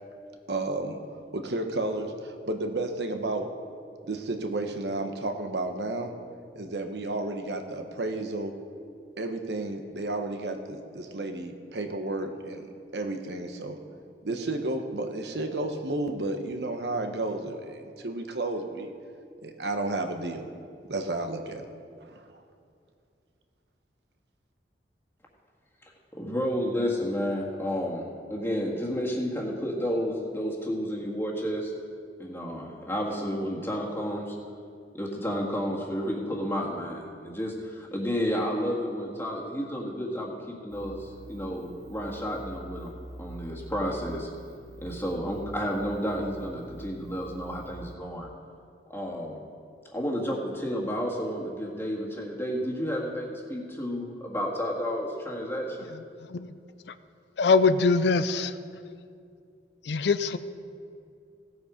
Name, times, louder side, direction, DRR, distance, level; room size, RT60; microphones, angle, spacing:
voice 1, 0.5-3.5 4.1-6.1 6.5-8.5 9.2-13.8 14.2-18.9 19.4-20.5 20.9-21.7 22.0-22.4, right 2 dB, 75° right, 5 dB, 1.1 m, -32 dB
voice 2, 26.1-31.7 32.2-34.4 34.9-42.9 43.2-44.3 44.8-48.3 48.9-49.4 49.9-55.9, equal, 15° left, -2 dB, 1.8 m, -31 dB
sound 1, 40.7-48.0, right 1 dB, 20° right, 0.9 m, -45 dB
voice 3, 57.4-58.6 59.8-60.4, left 4 dB, 75° left, 12 dB, 0.5 m, -23 dB
16.5 x 8.0 x 5.1 m, 2.4 s
head